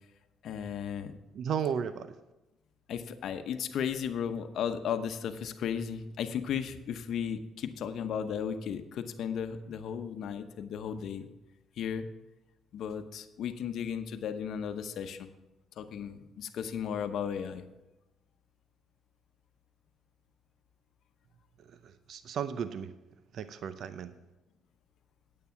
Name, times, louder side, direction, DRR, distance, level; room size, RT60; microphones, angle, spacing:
voice 1, 0.4-1.2 2.9-11.3 11.8-12.1 12.7-15.3 15.8-17.6, left 8 dB, 75° left, 9 dB, 0.8 m, -35 dB
voice 2, 1.3-2.1 21.8-22.9 23.3-24.1, right 7 dB, 70° right, 12 dB, 0.6 m, -34 dB
9.4 x 8.5 x 5.8 m, 0.99 s
cardioid pair, 90°, 0 cm